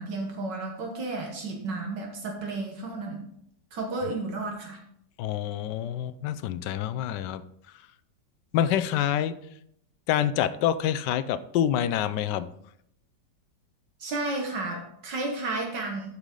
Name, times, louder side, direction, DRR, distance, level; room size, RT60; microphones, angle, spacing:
voice 1, 0.0-3.2 3.7-4.8 14.0-16.1, right 2 dB, 75° right, 0 dB, 1.9 m, -32 dB
voice 2, 5.2-7.4 8.5-9.4 10.1-12.5, left 10 dB, 75° left, 13 dB, 1.2 m, -27 dB
12.5 x 4.9 x 3.8 m, 0.72 s
omnidirectional pair, 1.9 m